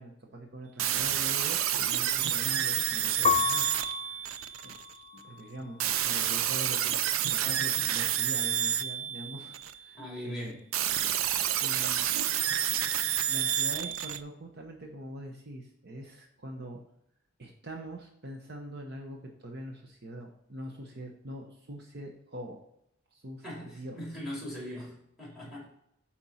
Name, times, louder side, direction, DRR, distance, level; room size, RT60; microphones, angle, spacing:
voice 1, 0.0-3.7 3.9-4.8 5.2-10.6 11.0-12.1 13.3-16.8 17.4-22.6 23.1-24.0 24.5-24.8, right 1 dB, 50° right, 2 dB, 0.9 m, -43 dB
sound 1, 0.8-4.9 5.8-9.9 10.7-14.2, right 10 dB, 85° right, 0.5 m, -29 dB
Piano, 3.2-6.0 6.6-7.3, left 8 dB, 20° left, 0.4 m, -33 dB
voice 2, 9.9-10.6 23.4-25.7, left 1 dB, ahead, -3 dB, 2.9 m, -40 dB
8.9 x 4.4 x 4.1 m, 0.78 s
head